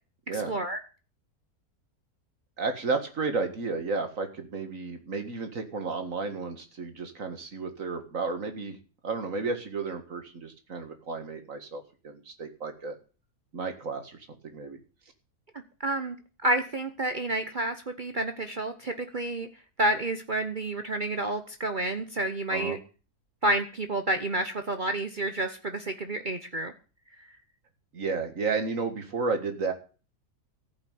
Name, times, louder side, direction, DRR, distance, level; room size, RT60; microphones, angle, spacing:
voice 1, 0.5-0.8 15.8-16.2 16.4-19.5 19.8-22.8 23.4-26.7, right 1 dB, 35° right, 7 dB, 0.9 m, -29 dB
voice 2, 2.6-8.8 9.0-13.0 13.5-14.8 22.5-22.8 27.9-29.7, right 4 dB, 55° right, 7 dB, 2.1 m, -32 dB
14.5 x 5.7 x 9.4 m, 0.37 s
omnidirectional pair, 1.6 m